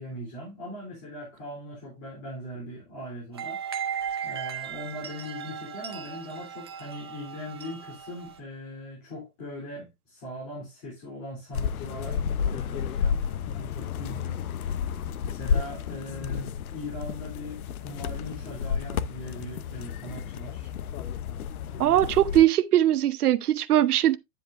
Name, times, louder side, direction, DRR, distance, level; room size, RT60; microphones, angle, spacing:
voice 1, 0.0-3.6 4.2-14.7 15.2-20.7 21.6-22.1, left 1 dB, 25° left, 3.4 m, -40 dB
sound 1, 3.3-8.4, right 8 dB, 20° right, 0.5 m, -36 dB
sound 2, 11.5-22.4, left 7 dB, 70° left, 0.8 m, -31 dB
voice 2, 21.8-24.2, right 12 dB, 75° right, 1.1 m, -21 dB
10.0 x 7.5 x 2.5 m
supercardioid pair, 180°, 46 cm